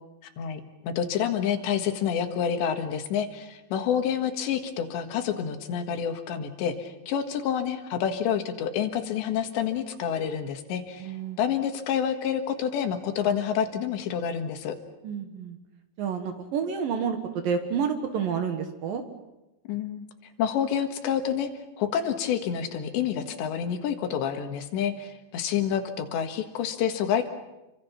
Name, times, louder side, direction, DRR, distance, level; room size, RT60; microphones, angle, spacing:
voice 1, 0.4-11.1 11.4-14.8 19.7-20.1 20.4-21.5 21.8-27.3, left 8 dB, 75° left, 6 dB, 3.8 m, -28 dB
voice 2, 11.0-11.4 15.0-15.6 16.0-19.0, right 6 dB, 60° right, 6 dB, 2.7 m, -29 dB
28.5 x 25.0 x 5.9 m, 0.97 s
omnidirectional pair, 5.2 m